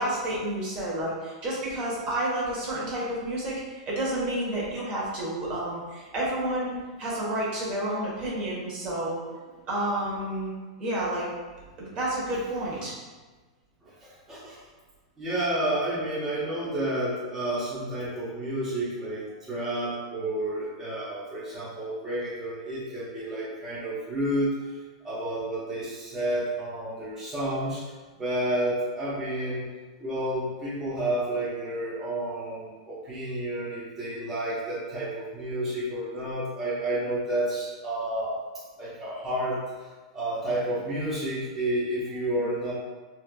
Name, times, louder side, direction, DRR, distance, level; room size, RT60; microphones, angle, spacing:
voice 1, 0.0-9.2 9.7-10.5 10.8-11.3 11.8-12.9, right 1 dB, 35° right, -6 dB, 1.2 m, -30 dB
voice 2, 13.8-14.6 15.2-24.8 25.0-29.7 30.0-38.4 38.8-39.9 40.1-42.7, right 1 dB, 10° right, -10 dB, 0.9 m, -30 dB
4.3 x 2.5 x 2.3 m, 1.3 s
hypercardioid pair, 130°, 3 cm